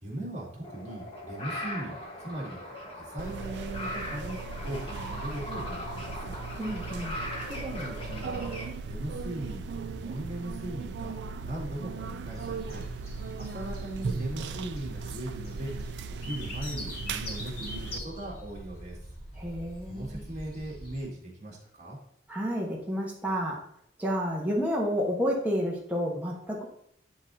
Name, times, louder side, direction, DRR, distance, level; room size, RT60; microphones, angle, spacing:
voice 1, 0.0-4.4 4.6-6.4 7.5-8.5 8.8-11.2 11.4-12.8 13.4-15.7 16.2-19.0 19.9-22.0, right 1 dB, 40° right, -3 dB, 2.0 m, -39 dB
sound 1, 0.6-8.7, left 1 dB, 30° left, 1.2 m, -39 dB
sound 2, 3.2-18.0, right 4 dB, 75° right, 0.4 m, -38 dB
voice 2, 6.6-7.2 19.4-20.2 22.3-23.6 24.0-26.6, equal, 10° right, -4 dB, 1.1 m, -30 dB
sound 3, 12.3-21.0, equal, 60° left, 2.2 m, -43 dB
9.8 x 3.8 x 2.7 m, 0.68 s
head